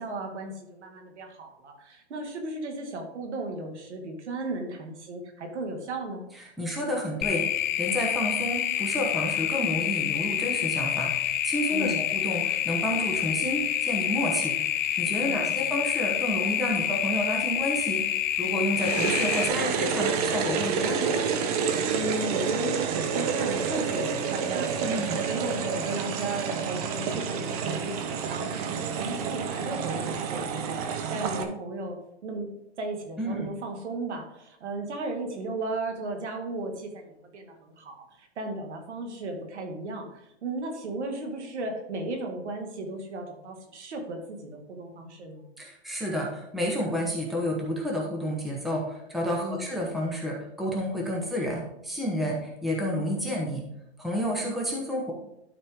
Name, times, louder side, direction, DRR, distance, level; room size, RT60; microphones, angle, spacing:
voice 1, 0.0-6.2 11.7-12.1 15.2-15.7 21.6-25.0 25.3-45.5 49.4-49.6 52.3-52.5, right 2 dB, 80° right, 3 dB, 2.0 m, -35 dB
voice 2, 6.3-7.4 7.8-14.6 15.0-18.1 18.4-21.1 24.8-25.2 33.2-33.5 45.6-53.6 54.0-55.1, equal, ahead, -2 dB, 0.8 m, -30 dB
sound 1, 7.2-19.5, left 11 dB, 45° left, 0.5 m, -28 dB
sound 2, 18.7-31.4, right 6 dB, 35° right, 0.7 m, -29 dB
12.0 x 4.3 x 3.6 m, 0.81 s
hypercardioid pair, 155°, 34 cm